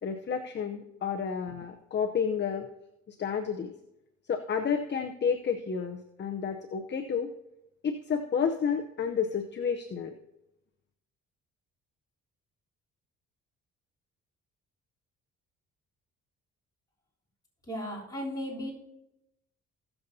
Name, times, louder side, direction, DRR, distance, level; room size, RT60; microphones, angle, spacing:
voice 1, 0.0-2.7 3.1-3.7 4.3-7.3 7.8-10.2, left 6 dB, 35° left, 4 dB, 0.7 m, -30 dB
voice 2, 17.7-18.7, equal, 10° left, -6 dB, 3.6 m, -35 dB
19.5 x 6.9 x 2.8 m, 0.90 s
cardioid pair, 90°, 30 cm